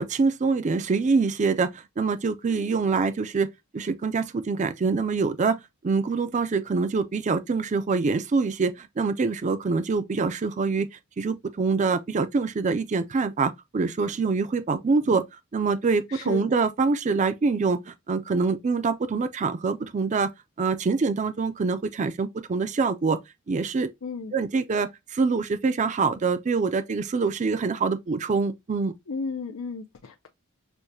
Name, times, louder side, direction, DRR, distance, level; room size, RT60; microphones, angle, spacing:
voice 1, 0.0-3.5 3.7-5.6 5.8-10.9 11.2-15.2 15.5-20.3 20.6-23.2 23.5-23.9 24.3-28.9, right 4 dB, 35° right, 0.4 m, -25 dB
voice 2, 16.1-16.5 24.0-24.3 29.1-30.3, left 4 dB, 85° left, 0.6 m, -33 dB
6.3 x 2.2 x 2.6 m
head